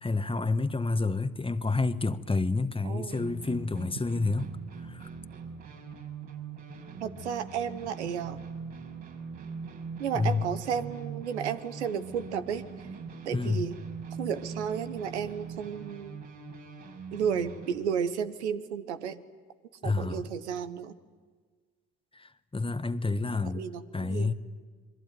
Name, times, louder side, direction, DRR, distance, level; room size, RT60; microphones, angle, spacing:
voice 1, 0.0-4.5 4.8-5.1 10.1-10.4 13.3-13.7 19.8-20.3 22.1-23.6 23.9-24.3, left 3 dB, 15° left, 1.4 m, -29 dB
voice 2, 2.8-3.3 7.0-8.4 10.0-12.6 13.2-13.7 14.2-16.2 17.1-19.2 19.8-20.9 23.5-24.3, right 7 dB, 90° right, 1.2 m, -33 dB
sound 1, 3.1-17.8, right 5 dB, 60° right, 5.8 m, -42 dB
27.5 x 22.5 x 9.5 m
hypercardioid pair, 55°, 33 cm